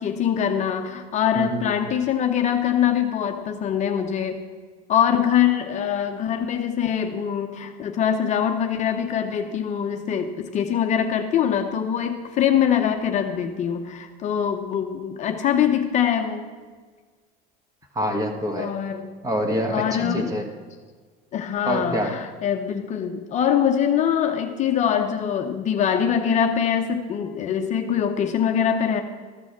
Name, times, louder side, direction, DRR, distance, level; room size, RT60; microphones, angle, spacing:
voice 1, 0.0-4.4 4.9-16.5 18.6-19.2 19.7-20.3 21.3-29.0, left 8 dB, 35° left, 5 dB, 0.8 m, -23 dB
voice 2, 1.4-1.7 18.0-18.7 19.2-20.5 21.7-22.1, equal, 15° right, 4 dB, 1.7 m, -26 dB
13.5 x 6.1 x 7.4 m, 1.5 s
supercardioid pair, 130°, 19 cm